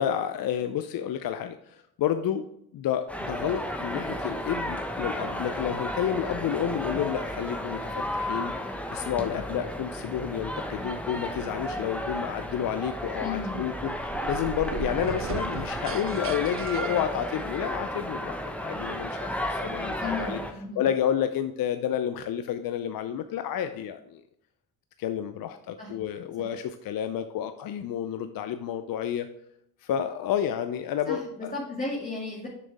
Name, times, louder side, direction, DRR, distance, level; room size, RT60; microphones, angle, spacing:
voice 1, 0.0-20.4 20.8-24.2 25.0-29.3 29.8-31.5, left 9 dB, 55° left, 9 dB, 0.6 m, -30 dB
sound 1, 3.1-20.5, equal, 5° left, 1.2 m, -33 dB
voice 2, 13.2-13.6 20.0-20.8 25.8-25.9 26.4-26.5 31.1-32.5, left 3 dB, 20° left, -4 dB, 2.4 m, -34 dB
sound 2, 13.8-17.8, right 8 dB, 35° right, 0.4 m, -38 dB
7.4 x 6.3 x 3.5 m, 0.77 s
hypercardioid pair, 55°, 42 cm